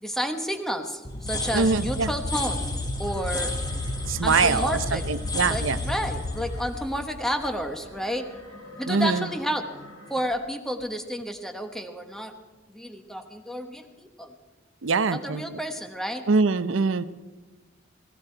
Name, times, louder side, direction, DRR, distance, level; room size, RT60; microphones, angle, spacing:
voice 1, 0.0-2.6 3.0-3.5 4.2-5.0 5.5-8.3 8.8-9.7 10.1-12.4 12.7-14.3 15.1-16.3, equal, ahead, 6 dB, 1.1 m, -31 dB
sound 1, 1.0-7.9, left 2 dB, 20° left, 1.6 m, -31 dB
voice 2, 1.5-2.1 4.1-5.8 8.9-9.3 14.8-15.6 16.3-17.0, right 4 dB, 80° right, 14 dB, 0.7 m, -23 dB
sound 2, 3.0-10.3, left 1 dB, 85° left, 2.5 m, -47 dB
17.0 x 17.0 x 4.5 m, 1.2 s
head